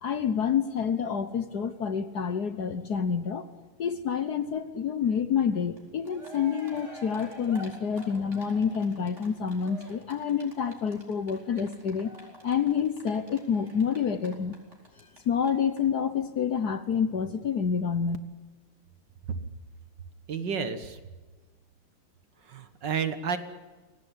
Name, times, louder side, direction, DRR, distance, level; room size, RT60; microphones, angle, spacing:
voice 1, 0.0-3.5 3.8-12.1 12.4-14.5 15.2-18.2, left 7 dB, 55° left, 11 dB, 1.4 m, -28 dB
Cheering, 5.8-5.9 6.0-15.2 15.4-15.5 15.8-15.9, right 1 dB, 30° right, 5.0 m, -47 dB
voice 2, 20.3-21.0 22.4-23.4, right 6 dB, 55° right, 10 dB, 2.1 m, -31 dB
23.5 x 18.0 x 9.9 m, 1.3 s
omnidirectional pair, 2.3 m